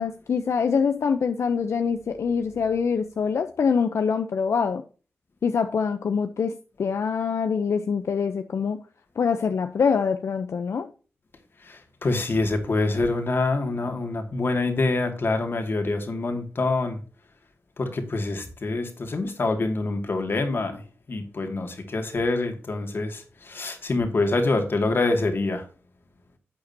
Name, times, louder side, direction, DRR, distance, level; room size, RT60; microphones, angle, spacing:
voice 1, 0.0-4.8 5.4-6.5 6.8-8.8 9.2-10.9, left 6 dB, 85° left, 8 dB, 0.7 m, -24 dB
voice 2, 11.6-17.0 17.8-20.8 21.1-25.6, left 3 dB, 50° left, 5 dB, 2.3 m, -26 dB
11.5 x 8.8 x 2.8 m, 0.36 s
wide cardioid pair, 135°, 5 cm